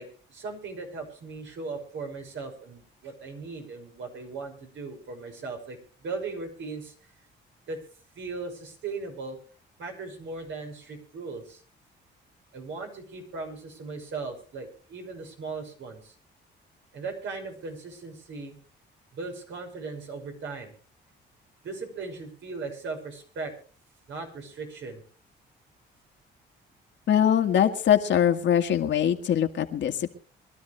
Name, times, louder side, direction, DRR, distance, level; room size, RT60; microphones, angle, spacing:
voice 1, 0.0-6.9 7.7-7.8 8.1-9.4 9.8-11.6 12.5-16.1 16.9-18.6 19.1-20.7 21.6-23.5 24.1-25.0, right 4 dB, 70° right, 2 dB, 5.9 m, -38 dB
voice 2, 27.1-30.1, left 9 dB, 65° left, 5 dB, 1.9 m, -22 dB
24.5 x 12.5 x 3.3 m, 0.39 s
cardioid pair, 90°, 20 cm